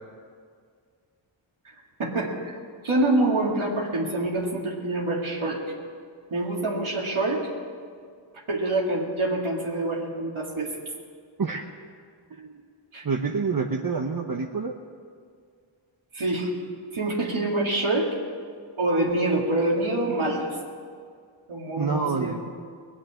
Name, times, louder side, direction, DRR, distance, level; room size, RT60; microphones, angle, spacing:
voice 1, 2.0-2.5 2.8-5.6 6.3-7.5 8.5-10.7 12.9-13.0 16.1-16.5 16.9-18.1 18.8-20.5 21.5-22.4, right 2 dB, 85° right, -3 dB, 2.2 m, -26 dB
voice 2, 13.0-14.8 21.8-22.5, right 5 dB, 45° right, 2 dB, 0.9 m, -27 dB
19.0 x 7.4 x 8.8 m, 2.1 s
wide cardioid pair, 55°, 48 cm